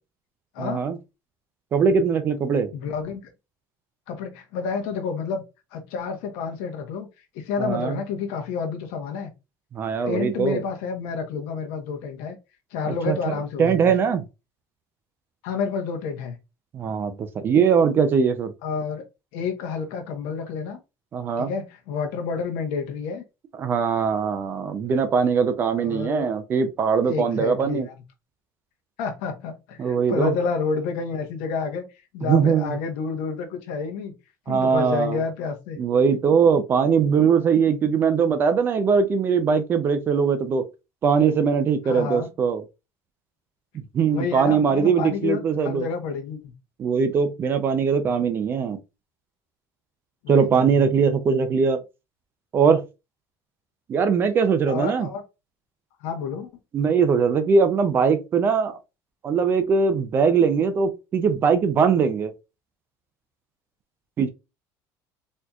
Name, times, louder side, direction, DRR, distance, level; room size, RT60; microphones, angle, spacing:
voice 1, 0.6-1.0 1.7-2.7 7.6-8.0 9.7-10.6 12.9-14.2 16.7-18.5 21.1-21.5 23.6-27.9 29.8-30.3 32.2-32.8 34.5-35.2 35.8-40.6 41.0-42.6 43.9-45.9 46.8-48.8 50.3-51.8 52.5-52.8 53.9-55.1 56.7-58.8 59.2-62.3 64.2-64.3, right 6 dB, 25° right, 0.4 m, -21 dB
voice 2, 2.7-3.3 4.1-5.4 5.7-7.1 7.3-9.3 10.0-12.3 12.7-13.9 15.4-16.4 18.6-19.0 19.3-20.8 21.4-23.2 25.8-26.3 27.0-27.8 29.0-31.9 32.1-34.1 34.5-35.8 41.8-42.3 44.1-46.5 50.2-50.8 54.7-55.2 56.0-56.5, left 5 dB, 90° left, 1.0 m, -29 dB
4.2 x 2.8 x 2.3 m
cardioid pair, 175°, 8 cm